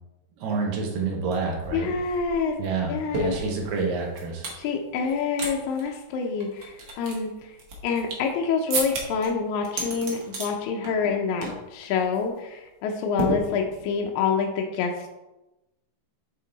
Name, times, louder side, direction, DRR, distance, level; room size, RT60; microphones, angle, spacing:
voice 1, 0.4-1.9 2.6-4.5, right 4 dB, 80° right, -1 dB, 2.8 m, -28 dB
sound 1, 1.3-1.4 1.6-4.6 5.0-5.5 5.8-5.9 6.4-8.3 8.7-9.3 9.6-10.5 10.8-11.1 11.4-11.7 12.0-12.2 13.2-13.9, right 2 dB, 55° right, 1.4 m, -32 dB
voice 2, 1.7-2.6 2.9-3.4 4.5-7.6 7.8-15.1, left 5 dB, 80° left, 1 dB, 1.8 m, -27 dB
9.2 x 3.6 x 3.9 m, 0.99 s
omnidirectional pair, 4.0 m